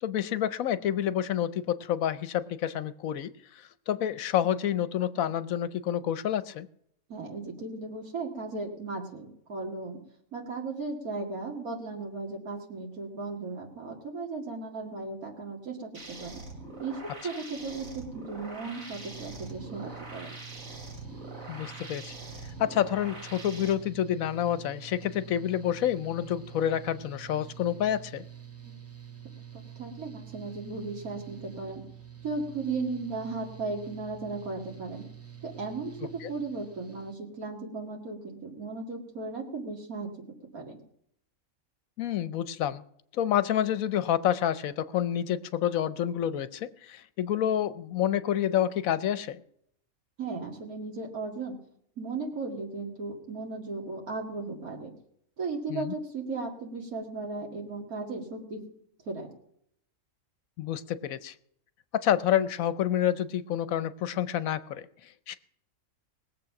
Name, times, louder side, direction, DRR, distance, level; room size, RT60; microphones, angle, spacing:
voice 1, 0.0-6.7 21.5-22.1 22.6-28.2 36.2-36.3 42.0-42.8 43.1-49.4 55.7-55.9 60.6-61.3 61.9-65.4, left 10 dB, 75° left, 15 dB, 1.1 m, -28 dB
voice 2, 7.1-10.0 10.3-16.4 16.8-20.3 28.6-28.8 29.5-31.8 32.2-35.0 35.4-40.1 40.5-40.8 50.2-51.6 52.0-54.9 55.4-58.6 59.1-59.3, right 3 dB, 90° right, 0 dB, 2.6 m, -36 dB
sound 1, 15.9-23.7, right 2 dB, 70° right, 3.1 m, -44 dB
Mechanical fan, 18.6-37.1, right 9 dB, 10° right, 0.9 m, -47 dB
19.5 x 7.6 x 5.8 m, 0.71 s
omnidirectional pair, 1.5 m